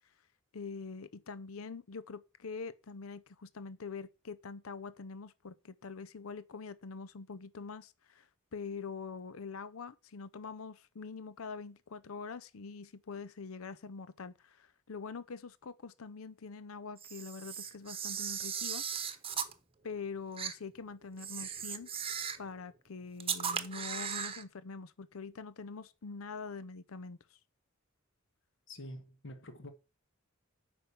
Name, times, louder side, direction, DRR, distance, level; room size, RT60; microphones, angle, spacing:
voice 1, 0.5-18.8 19.8-21.9 22.4-27.4, left 4 dB, 80° left, 0.6 m, -44 dB
Camera, 17.0-19.5 20.4-20.5 21.2-22.5 23.2-24.4, right 7 dB, 30° right, 1.0 m, -37 dB
voice 2, 28.7-29.7, left 1 dB, 60° left, 1.4 m, -46 dB
8.9 x 5.4 x 7.0 m
head